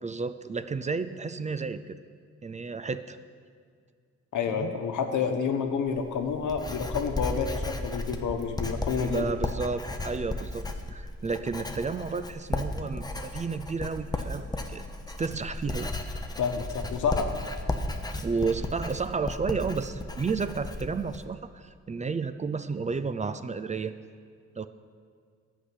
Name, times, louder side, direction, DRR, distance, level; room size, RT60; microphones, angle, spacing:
voice 1, 0.0-2.0 2.4-3.2 4.6-4.8 9.0-14.8 15.2-15.9 18.2-23.9 24.6-24.7, right 4 dB, 25° right, 12 dB, 0.4 m, -32 dB
voice 2, 4.3-9.3 16.4-17.3, left 6 dB, 90° left, 5 dB, 1.1 m, -29 dB
Writing, 5.9-21.2, left 2 dB, 15° left, 0.7 m, -35 dB
11.0 x 5.8 x 8.3 m, 2.1 s
cardioid pair, 110°, 30 cm